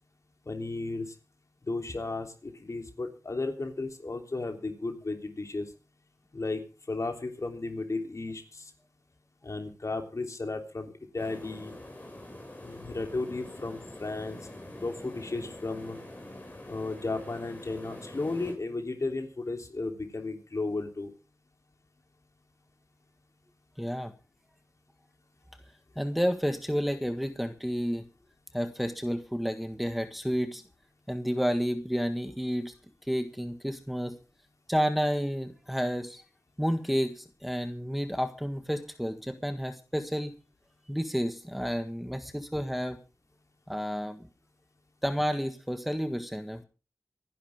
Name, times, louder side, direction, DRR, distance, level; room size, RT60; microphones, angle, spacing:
voice 1, 0.5-1.1 1.6-5.7 6.3-6.6 6.9-8.7 9.4-10.9 11.1-11.8 12.6-14.4 14.8-16.0 16.7-21.1, left 3 dB, 55° left, 5 dB, 3.4 m, -34 dB
sound 1, 11.2-18.5, left 1 dB, 25° left, 6.3 m, -45 dB
voice 2, 23.8-24.1 25.9-28.1 28.5-30.6 31.1-32.7 33.1-34.2 34.7-36.2 36.6-40.3 40.9-43.0 43.7-44.3 45.0-46.6, equal, ahead, 7 dB, 1.6 m, -30 dB
26.0 x 11.0 x 3.6 m, 0.34 s
wide cardioid pair, 80°, 6 cm